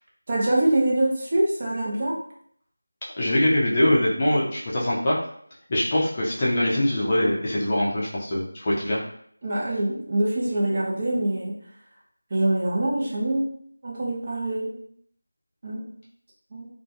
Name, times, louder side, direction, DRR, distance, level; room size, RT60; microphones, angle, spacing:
voice 1, 0.3-2.2 9.4-11.5 12.3-13.5 13.8-14.7 15.6-15.9 16.5-16.7, right 1 dB, 30° right, -4 dB, 0.5 m, -24 dB
voice 2, 3.2-5.2 5.7-9.0, left 1 dB, 25° left, -6 dB, 0.5 m, -23 dB
2.1 x 2.1 x 2.7 m, 0.64 s
figure-of-eight pair, 170°, 0 cm